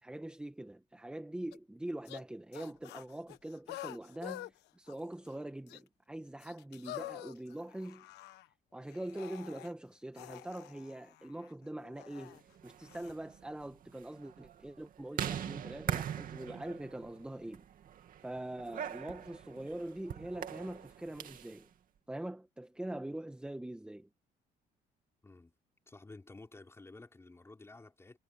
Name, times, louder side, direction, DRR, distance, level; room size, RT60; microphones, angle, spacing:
voice 1, 0.0-8.1 8.7-17.6 18.2-21.7 22.1-24.1, right 1 dB, 5° right, 1.4 m, -43 dB
sound 1, 1.5-1.6 2.1-2.2 2.5-4.5 4.9-5.3 5.7-5.8 6.4-8.5 8.9-9.7 10.2-12.4 12.8-13.1, left 16 dB, 85° left, 1.4 m, -48 dB
sound 2, 12.5-21.6, right 10 dB, 55° right, 2.5 m, -42 dB
voice 2, 25.2-25.5 25.9-28.2, left 2 dB, 15° left, 4.3 m, -53 dB
cardioid pair, 110°, 17 cm